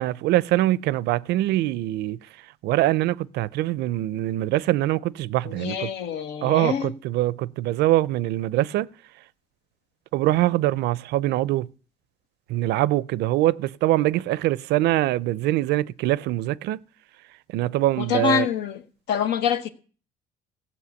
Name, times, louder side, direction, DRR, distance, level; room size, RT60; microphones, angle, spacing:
voice 1, 0.0-2.2 2.6-5.9 6.4-8.9 10.1-11.7 12.5-16.8 17.5-18.5, right 16 dB, 80° right, 0.5 m, -23 dB
voice 2, 5.4-6.9 18.0-18.8 19.1-19.7, left 8 dB, 85° left, 1.1 m, -25 dB
15.5 x 5.5 x 8.2 m
cardioid pair, 110°, 17 cm